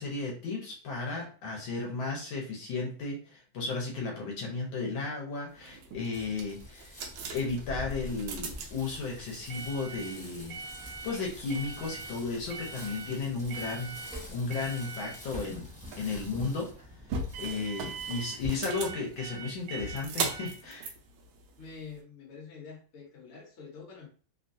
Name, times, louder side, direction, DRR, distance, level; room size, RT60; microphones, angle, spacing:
voice 1, 0.0-6.9 7.3-14.0 14.3-15.7 16.0-16.7 17.4-20.9, left 4 dB, 75° left, -1 dB, 1.6 m, -34 dB
sound 1, 5.6-22.0, right 4 dB, 75° right, 1.1 m, -40 dB
Bicycle, 6.1-18.5, equal, 5° left, 0.6 m, -46 dB
voice 2, 21.6-24.1, left 5 dB, 45° left, -3 dB, 1.1 m, -46 dB
3.6 x 2.3 x 2.6 m, 0.41 s
omnidirectional pair, 2.2 m